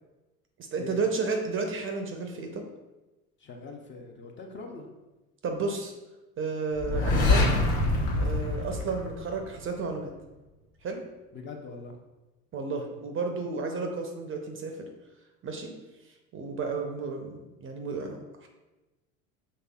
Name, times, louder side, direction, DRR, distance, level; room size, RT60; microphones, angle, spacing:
voice 1, 0.7-2.6 5.4-5.9 6.4-7.5 8.2-10.1 10.8-11.0 12.5-14.9 15.4-15.7 16.3-18.5, right 4 dB, 30° right, 3 dB, 0.5 m, -32 dB
voice 2, 3.4-4.9 11.3-11.9, left 3 dB, 30° left, 2 dB, 0.6 m, -42 dB
sound 1, 6.8-9.6, left 2 dB, 75° left, 1.2 m, -25 dB
5.4 x 3.3 x 2.3 m, 1.1 s
hypercardioid pair, 85°, 42 cm